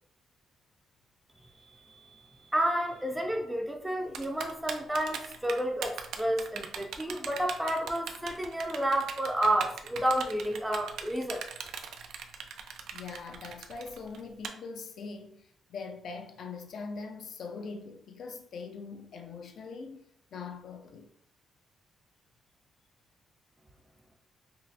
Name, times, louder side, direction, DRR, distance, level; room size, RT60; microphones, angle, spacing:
voice 1, 1.4-11.4, right 1 dB, 5° right, 0.5 m, -31 dB
Typing, 4.1-14.5, right 7 dB, 85° right, 0.4 m, -39 dB
voice 2, 12.9-20.0 20.3-21.1, left 4 dB, 60° left, 0.5 m, -42 dB
5.3 x 2.0 x 2.7 m
cardioid pair, 135°, 0 cm